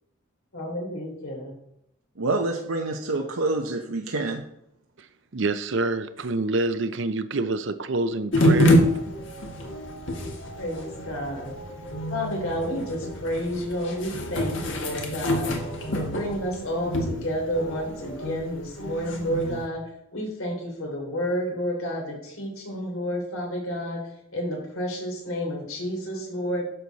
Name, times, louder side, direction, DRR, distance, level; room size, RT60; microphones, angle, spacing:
voice 1, 0.5-1.5 10.6-11.5 12.1-15.5 15.9-19.8 20.1-24.0 24.3-26.6, equal, 85° left, 3.3 m, -30 dB
voice 2, 2.2-4.4, right 2 dB, 85° right, 0.9 m, -27 dB
voice 3, 5.3-8.8, right 2 dB, 60° right, 0.6 m, -26 dB
sound 1, 8.3-19.7, equal, 60° left, 1.8 m, -27 dB
11.0 x 7.1 x 4.1 m
head